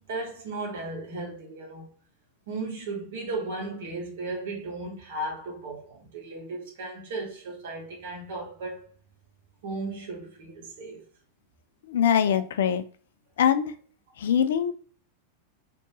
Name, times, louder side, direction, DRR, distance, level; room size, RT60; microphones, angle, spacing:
voice 1, 0.1-1.9 2.5-8.9 9.6-11.0, right 2 dB, 55° right, 1.3 m, -35 dB
voice 2, 11.9-12.8 13.4-13.7 14.2-14.7, left 8 dB, 60° left, 0.3 m, -23 dB
3.1 x 2.9 x 2.8 m
figure-of-eight pair, 90°, 0 cm